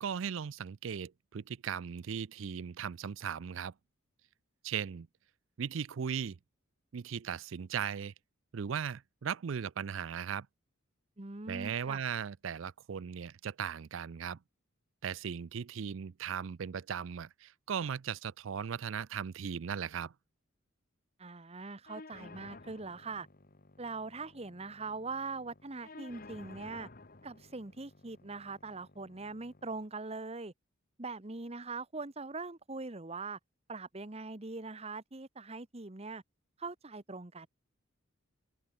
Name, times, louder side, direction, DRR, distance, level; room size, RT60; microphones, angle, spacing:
voice 1, 0.0-3.7 4.6-5.1 5.6-6.4 6.9-8.1 8.5-10.5 11.5-14.4 15.0-20.1, right 7 dB, 70° right, 0.4 m, -37 dB
voice 2, 11.2-12.0 21.2-23.3 23.8-26.9 27.2-30.5 31.0-33.4 33.7-36.2 36.6-37.5, right 3 dB, 30° right, 1.1 m, -42 dB
sound 1, 21.9-29.9, left 3 dB, 45° left, 1.4 m, -54 dB
head